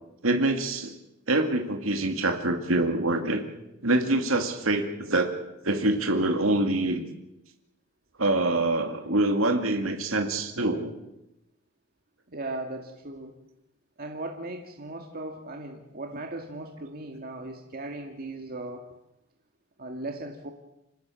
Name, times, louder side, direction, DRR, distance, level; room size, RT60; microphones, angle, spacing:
voice 1, 0.2-0.9 1.3-3.4 3.8-5.3 5.6-7.0 8.2-10.9, right 2 dB, 85° right, 5 dB, 2.3 m, -25 dB
voice 2, 12.3-13.3 14.0-18.8 19.8-20.5, right 2 dB, 50° right, 2 dB, 2.1 m, -37 dB
27.0 x 18.5 x 7.8 m, 0.90 s
head